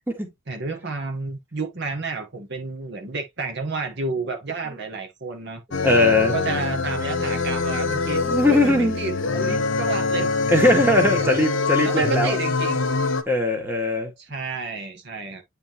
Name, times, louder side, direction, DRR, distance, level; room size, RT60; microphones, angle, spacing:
voice 1, 0.5-5.6 6.3-8.2 8.5-10.3 11.1-11.3 11.8-12.9 14.2-15.4, right 4 dB, 55° right, 1.4 m, -30 dB
sound 1, 5.7-13.2, left 3 dB, 65° left, 0.9 m, -24 dB
voice 2, 5.8-6.3 8.2-8.9 10.5-12.4 13.3-14.1, left 1 dB, 10° right, 1.7 m, -20 dB
9.3 x 3.6 x 3.0 m
head